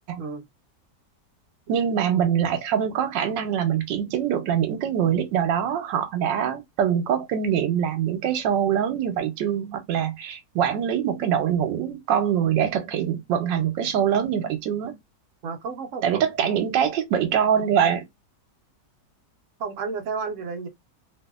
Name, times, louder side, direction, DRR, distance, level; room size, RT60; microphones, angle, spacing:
voice 1, 1.7-14.9 16.0-18.0, right 8 dB, 85° right, 1.3 m, -24 dB
voice 2, 15.4-16.5 19.6-20.7, right 5 dB, 60° right, 0.9 m, -32 dB
3.0 x 2.7 x 2.3 m
omnidirectional pair, 1.9 m